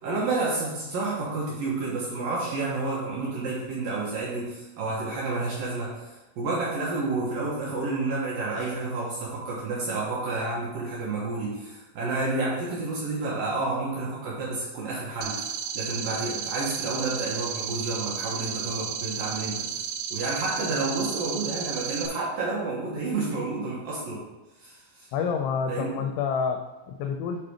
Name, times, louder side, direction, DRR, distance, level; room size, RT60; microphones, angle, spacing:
voice 1, 0.0-24.2 24.6-25.1 25.7-25.9, right 3 dB, 75° right, -5 dB, 2.1 m, -30 dB
sound 1, 15.2-22.1, right 7 dB, 90° right, 3.3 m, -33 dB
voice 2, 25.1-27.4, left 6 dB, 85° left, 5 dB, 2.6 m, -28 dB
7.7 x 4.1 x 4.9 m, 1.1 s
omnidirectional pair, 5.7 m